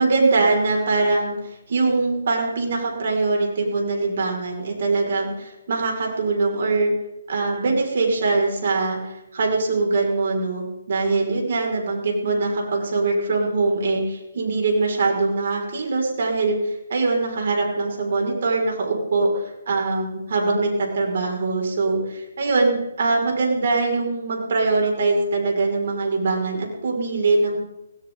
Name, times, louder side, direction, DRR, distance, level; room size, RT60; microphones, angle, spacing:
voice 1, 0.0-6.9 7.3-27.6, right 3 dB, 55° right, 0 dB, 5.6 m, -22 dB
18.0 x 18.0 x 4.0 m, 0.93 s
figure-of-eight pair, 150°, 0 cm